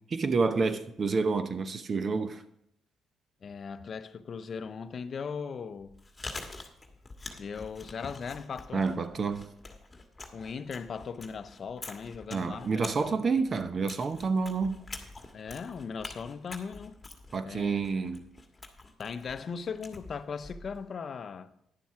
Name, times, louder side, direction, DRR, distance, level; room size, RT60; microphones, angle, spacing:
voice 1, 0.1-2.4 8.7-9.5 12.3-14.8 17.3-18.2, right 4 dB, 45° right, 0.8 m, -29 dB
voice 2, 3.4-6.0 7.4-8.9 10.3-13.3 15.3-17.0 17.4-18.0 19.0-21.5, left 6 dB, 50° left, 0.6 m, -38 dB
Chewing mastication, 5.8-20.9, left 2 dB, 20° left, 1.5 m, -46 dB
10.5 x 7.1 x 4.8 m
cardioid pair, 90°, 0 cm